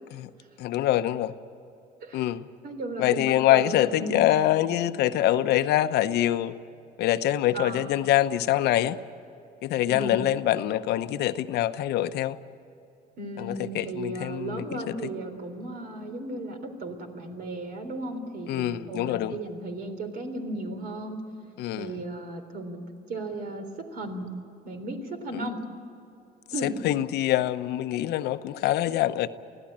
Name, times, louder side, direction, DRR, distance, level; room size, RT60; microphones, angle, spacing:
voice 1, 0.6-1.3 2.1-2.5 3.0-6.6 7.0-9.0 9.6-12.4 13.4-15.1 18.5-19.4 21.6-22.0 25.3-25.4 26.8-29.3, left 13 dB, 80° left, 11 dB, 0.9 m, -25 dB
voice 2, 2.6-4.3 7.5-7.9 9.9-10.2 13.2-21.2 21.8-24.3 24.6-25.6 26.5-26.8, right 2 dB, 60° right, 6 dB, 3.7 m, -35 dB
24.5 x 16.0 x 8.7 m, 2.7 s
cardioid pair, 110°, 17 cm